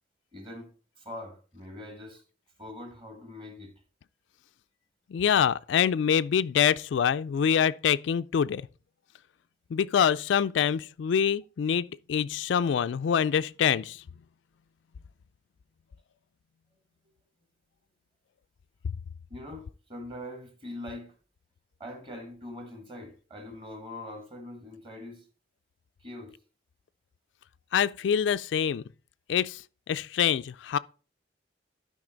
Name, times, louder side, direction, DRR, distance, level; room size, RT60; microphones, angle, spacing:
voice 1, 0.3-0.7 1.0-2.2 2.6-3.7 19.3-21.1 21.8-25.2 26.0-26.3, left 1 dB, 25° right, 1.6 m, -42 dB
voice 2, 5.1-8.6 9.7-14.0 27.7-28.8 29.3-29.6 29.9-30.8, left 8 dB, 70° left, 0.3 m, -25 dB
12.0 x 5.2 x 3.9 m
head